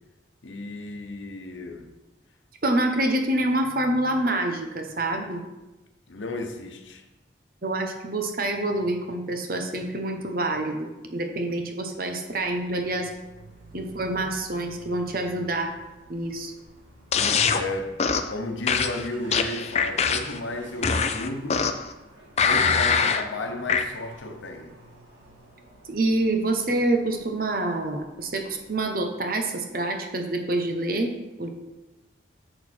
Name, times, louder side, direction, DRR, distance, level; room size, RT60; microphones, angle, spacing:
voice 1, 0.4-1.9 6.1-7.0 17.5-18.0 18.3-21.6 22.4-24.7, left 2 dB, 90° left, 1.0 m, -33 dB
voice 2, 2.6-5.4 7.6-13.1 13.7-15.7 16.1-16.5 25.9-31.1 31.4-31.5, right 2 dB, 50° right, 1.0 m, -27 dB
Car, 12.3-29.0, right 1 dB, 85° right, 2.2 m, -51 dB
sound 1, 17.1-17.6 18.0-18.3 18.7-20.4 20.8-21.9 22.4-23.2 23.7-23.8, left 6 dB, 35° left, 0.4 m, -23 dB
6.6 x 6.4 x 4.5 m
head